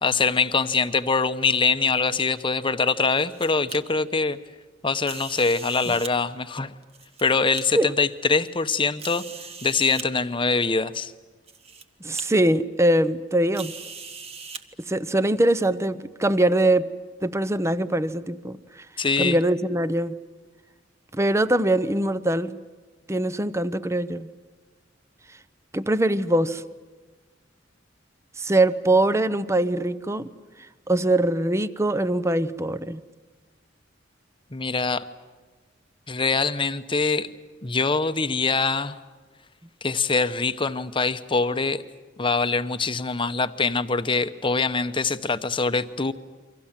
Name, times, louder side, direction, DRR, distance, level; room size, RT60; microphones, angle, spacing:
voice 1, 0.0-4.4 4.8-6.7 7.2-9.2 9.6-11.1 19.0-19.4 34.5-35.1 36.1-37.3 37.6-39.0 39.8-41.8 42.2-46.1, left 4 dB, 25° left, 11 dB, 0.9 m, -23 dB
sound 1, 3.1-3.8 5.0-6.1 6.8-7.6 8.3-8.4 9.0-10.1 11.0-11.1 11.5-11.8 12.1-12.3 13.5-14.6, right 5 dB, 35° right, 1.5 m, -39 dB
voice 2, 12.0-13.7 14.8-16.9 17.2-18.6 19.2-20.2 21.1-22.6 23.1-24.3 25.7-26.6 28.4-30.3 30.9-33.0, right 1 dB, 15° right, 15 dB, 0.8 m, -22 dB
29.0 x 24.5 x 7.5 m, 1.3 s
head